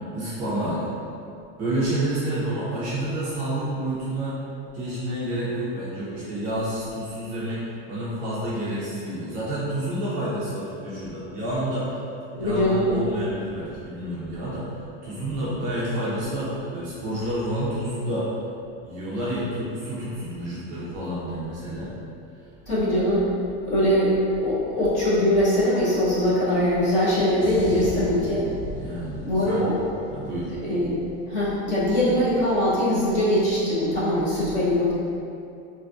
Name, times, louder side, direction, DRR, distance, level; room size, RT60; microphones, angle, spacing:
voice 1, 0.1-0.8 1.6-4.4 4.7-7.6 7.9-12.0 12.3-18.3 18.8-21.9 28.7-29.7 30.1-30.5, right 1 dB, 30° right, -9 dB, 0.4 m, -29 dB
voice 2, 12.4-12.8 22.7-23.3 23.7-28.5 29.2-29.7 30.7-30.9 31.3-34.9, left 1 dB, 25° left, -9 dB, 0.6 m, -22 dB
sound 1, 27.4-32.0 32.2-32.5, left 1 dB, 70° left, 0.7 m, -39 dB
3.8 x 2.5 x 2.3 m, 2.6 s
supercardioid pair, 180°, 31 cm